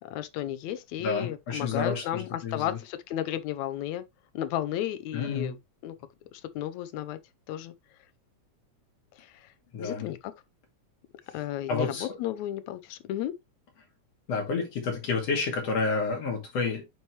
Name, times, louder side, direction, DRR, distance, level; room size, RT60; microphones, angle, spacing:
voice 1, 0.0-4.0 4.3-5.6 5.8-6.0 6.3-7.2 7.5-7.7 9.2-9.3 9.8-10.3 11.3-13.3, left 12 dB, 75° left, 2.0 m, -33 dB
voice 2, 1.0-2.8 5.1-5.5 9.7-10.1 11.7-12.2 14.3-16.8, left 4 dB, 55° left, 3.3 m, -30 dB
8.4 x 4.6 x 3.2 m
omnidirectional pair, 3.4 m